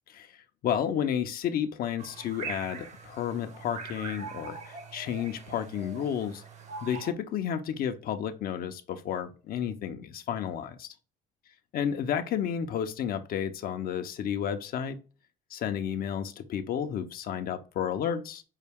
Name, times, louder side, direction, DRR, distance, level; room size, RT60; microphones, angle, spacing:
voice 1, 0.1-0.4 0.6-6.4 6.8-10.9 11.7-15.0 15.5-18.4, left 9 dB, 60° left, 8 dB, 0.6 m, -31 dB
sound 1, 2.0-7.1, right 5 dB, 45° right, 0.9 m, -42 dB
5.5 x 2.2 x 3.4 m, 0.33 s
cardioid pair, 110°, 17 cm